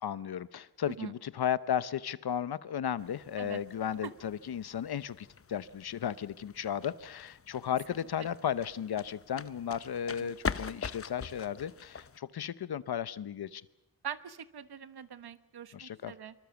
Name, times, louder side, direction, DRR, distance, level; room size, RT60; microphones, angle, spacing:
voice 1, 0.0-13.6 15.7-16.1, left 9 dB, 85° left, 16 dB, 0.9 m, -35 dB
sound 1, 3.0-12.2, left 6 dB, 35° left, 0.8 m, -43 dB
voice 2, 14.0-16.3, right 8 dB, 85° right, 12 dB, 1.2 m, -43 dB
25.5 x 24.0 x 7.1 m, 0.92 s
wide cardioid pair, 100°, 37 cm